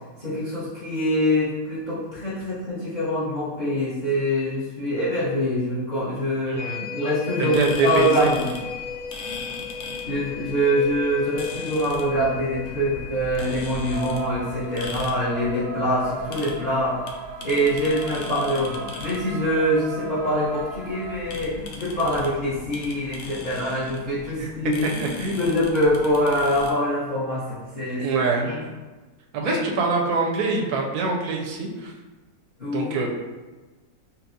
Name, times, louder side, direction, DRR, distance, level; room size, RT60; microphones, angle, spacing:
voice 1, 0.2-8.5 10.0-17.0 17.4-28.6 29.4-29.6 32.6-33.1, equal, 30° left, -11 dB, 0.9 m, -24 dB
voice 2, 6.5-6.8 7.4-8.3 24.4-24.5 24.8-25.4 28.0-28.5 29.3-31.9 32.7-33.1, right 4 dB, 70° right, 1 dB, 1.0 m, -24 dB
sound 1, 6.6-16.3 16.7-16.8, left 7 dB, 65° left, 1.8 m, -37 dB
sound 2, 7.4-26.7, left 2 dB, 85° left, 0.6 m, -39 dB
sound 3, 13.9-21.2, right 5 dB, 85° right, 1.3 m, -36 dB
5.5 x 2.3 x 2.7 m, 1.2 s
omnidirectional pair, 1.9 m